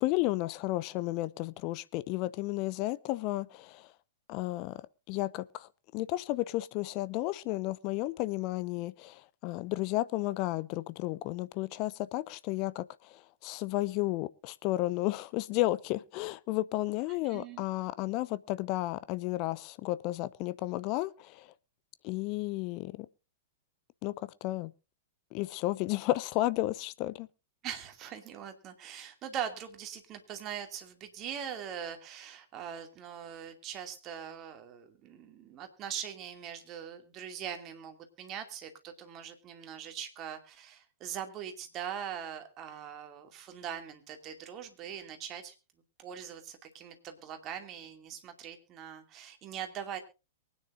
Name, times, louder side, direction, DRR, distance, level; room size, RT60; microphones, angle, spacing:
voice 1, 0.0-3.9 4.3-4.8 5.1-21.5 22.0-23.1 24.0-24.7 25.3-27.3, left 17 dB, 40° left, 0.7 m, -33 dB
voice 2, 17.2-17.7 27.6-45.5 46.0-50.0, right 9 dB, 30° right, 2.5 m, -42 dB
23.5 x 9.8 x 2.6 m
figure-of-eight pair, 100°, 0 cm